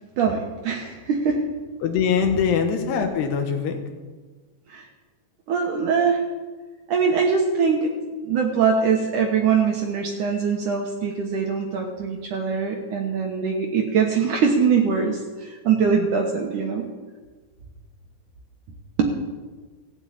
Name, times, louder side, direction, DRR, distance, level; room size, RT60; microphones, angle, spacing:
voice 1, 0.2-1.5 4.7-4.9 5.5-6.2 6.9-7.9 8.2-16.9 19.0-19.1, right 6 dB, 75° right, 1 dB, 1.8 m, -22 dB
voice 2, 1.8-3.8, left 7 dB, 70° left, 5 dB, 3.1 m, -22 dB
15.0 x 8.0 x 8.7 m, 1.3 s
omnidirectional pair, 5.4 m